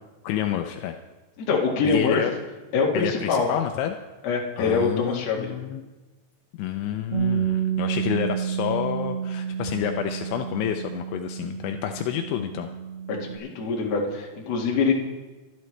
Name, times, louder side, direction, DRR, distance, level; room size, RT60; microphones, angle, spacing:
voice 1, 0.2-1.0 1.8-2.3 2.9-4.0 4.6-5.9 6.6-12.7, left 10 dB, 80° left, 5 dB, 2.8 m, -29 dB
voice 2, 1.4-2.2 2.7-3.5 4.2-5.5 13.2-14.9, left 4 dB, 50° left, -2 dB, 2.2 m, -24 dB
Bass guitar, 7.1-13.4, right 8 dB, 85° right, 1.3 m, -29 dB
23.0 x 12.0 x 3.3 m, 1.2 s
omnidirectional pair, 5.6 m